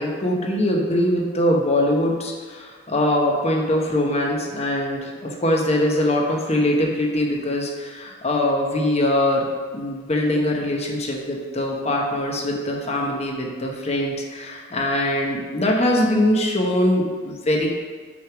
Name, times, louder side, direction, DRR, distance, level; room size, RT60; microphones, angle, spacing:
voice 1, 0.0-9.5 9.7-17.7, left 1 dB, 35° left, 0 dB, 0.9 m, -22 dB
6.1 x 3.5 x 6.0 m, 1.5 s
head